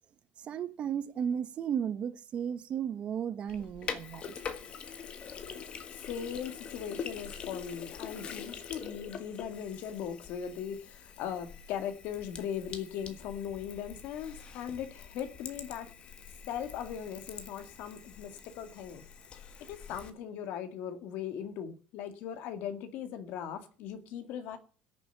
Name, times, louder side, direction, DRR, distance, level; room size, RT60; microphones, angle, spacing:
voice 1, 0.4-4.4, right 8 dB, 30° right, 0.8 m, -34 dB
Sink (filling or washing), 3.5-20.1, left 7 dB, 30° left, 1.4 m, -44 dB
voice 2, 5.9-15.9 16.5-19.0 19.7-24.6, left 8 dB, 55° left, 2.0 m, -39 dB
17.5 x 7.0 x 8.3 m
cardioid pair, 165°, 4 cm